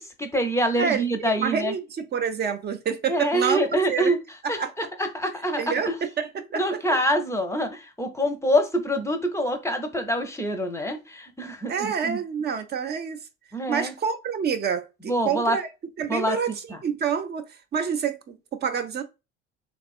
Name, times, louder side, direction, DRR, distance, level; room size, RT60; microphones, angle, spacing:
voice 1, 0.0-1.7 3.1-4.2 4.5-4.6 5.0-6.0 6.5-12.2 13.5-13.9 15.1-15.6 16.1-16.4 16.7-16.8, equal, 10° left, 0.7 m, -25 dB
voice 2, 1.4-3.6 3.9-4.1 4.4-4.7 5.6-5.9 6.2-6.6 6.9-7.0 11.7-13.2 13.7-15.7 16.0-16.5 16.8-19.0, right 7 dB, 30° right, 0.6 m, -27 dB
3.4 x 2.5 x 2.4 m
hypercardioid pair, 65°, 32 cm